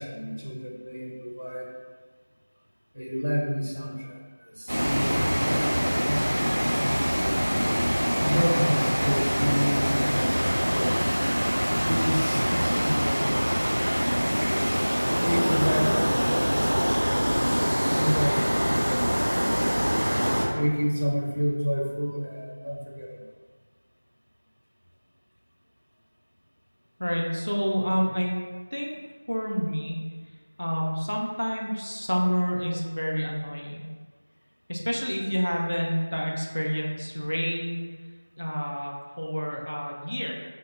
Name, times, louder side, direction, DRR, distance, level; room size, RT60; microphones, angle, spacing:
voice 1, 0.0-1.7 2.9-4.2 4.5-6.4 6.8-7.4 8.2-11.1 11.8-13.5 13.8-14.6 15.2-19.3 20.5-23.1, equal, 90° right, -2 dB, 0.6 m, -30 dB
sound 1, 4.7-20.4, equal, 25° right, 0.4 m, -24 dB
voice 2, 27.0-28.4 28.7-29.0 29.3-30.0 30.6-33.8 34.7-37.8 38.4-40.4, equal, 60° left, -2 dB, 0.5 m, -28 dB
3.0 x 2.1 x 3.1 m, 1.5 s
figure-of-eight pair, 180°, 0 cm